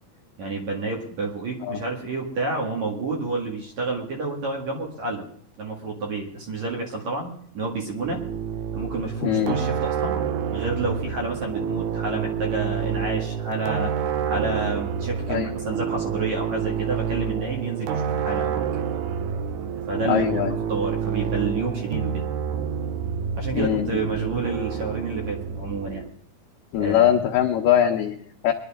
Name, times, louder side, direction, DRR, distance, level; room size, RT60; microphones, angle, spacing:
voice 1, 0.4-5.3 5.6-8.2 8.7-10.2 10.5-13.9 14.2-18.8 19.9-22.2 23.3-26.0 26.8-27.1, right 3 dB, 50° right, 0 dB, 2.9 m, -29 dB
sound 1, 8.0-26.1, right 7 dB, 80° right, 1.7 m, -28 dB
voice 2, 9.2-9.6 15.3-15.5 20.0-20.5 23.5-23.9 26.7-28.5, left 10 dB, 75° left, 1 dB, 2.2 m, -21 dB
23.0 x 11.0 x 3.6 m, 0.62 s
omnidirectional pair, 4.5 m